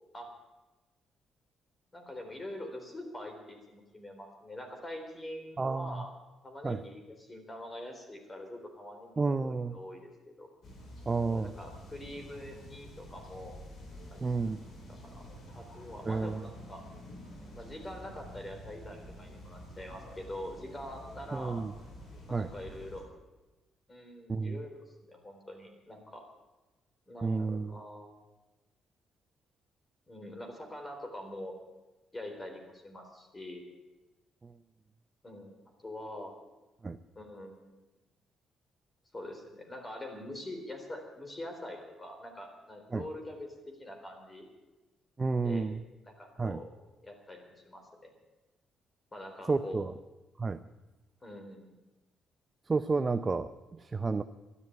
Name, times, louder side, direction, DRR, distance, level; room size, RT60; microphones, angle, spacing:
voice 1, 1.9-6.1 6.4-10.1 10.4-10.5 11.2-13.6 14.1-14.2 14.9-15.3 15.6-16.8 17.5-21.6 22.3-23.0 23.9-26.2 27.1-28.1 30.1-31.6 32.1-33.6 35.2-35.5 35.8-36.3 37.2-37.8 39.1-43.5 43.8-44.5 45.4-45.7 46.0-46.7 47.0-48.1 49.1-49.8 51.2-51.7, left 1 dB, 20° left, 4 dB, 3.9 m, -44 dB
voice 2, 5.6-6.0 6.6-6.8 9.2-9.8 11.1-11.5 14.2-14.6 16.1-16.4 21.3-21.7 22.3-22.5 24.3-24.6 27.2-27.7 34.4-34.5 36.8-37.0 42.9-43.0 45.2-45.8 46.4-46.6 49.5-49.9 50.4-50.6 52.7-54.2, right 4 dB, 25° right, 10 dB, 0.6 m, -31 dB
sound 1, 10.6-23.0, equal, 65° left, 4.6 m, -49 dB
12.0 x 11.0 x 9.6 m, 1.1 s
cardioid pair, 90°, 0 cm